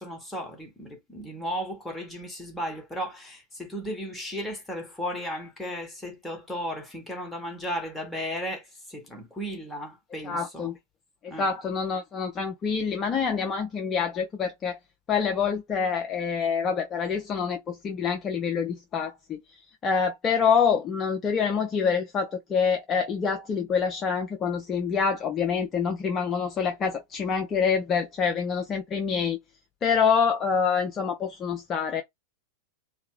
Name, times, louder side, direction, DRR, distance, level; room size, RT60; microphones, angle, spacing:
voice 1, 0.0-8.6 8.9-10.7 11.3-11.7, equal, 10° left, 1.3 m, -35 dB
voice 2, 10.2-10.7 11.4-14.8 15.1-19.4 19.8-29.4 29.8-32.0, left 6 dB, 25° left, 0.5 m, -26 dB
2.8 x 2.2 x 3.2 m
figure-of-eight pair, 90°, 0 cm